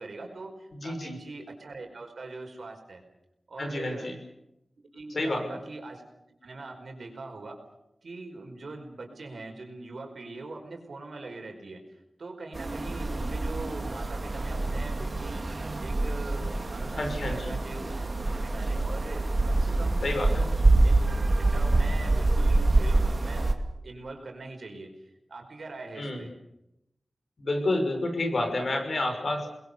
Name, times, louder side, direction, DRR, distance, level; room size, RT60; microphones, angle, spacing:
voice 1, 0.0-3.0 3.5-4.1 4.9-6.0 6.4-7.6 8.0-11.8 12.2-20.5 20.8-21.0 21.3-23.5 23.8-24.9 25.3-26.3, right 3 dB, 75° right, 3 dB, 5.0 m, -42 dB
voice 2, 0.8-1.2 3.6-4.1 5.1-5.4 17.0-17.5 20.0-20.4 26.0-26.3 27.4-29.5, left 2 dB, 65° left, 5 dB, 5.9 m, -29 dB
sound 1, 12.5-23.5, right 2 dB, 40° right, 2.3 m, -26 dB
29.0 x 21.5 x 6.9 m, 0.86 s
wide cardioid pair, 95°, 0 cm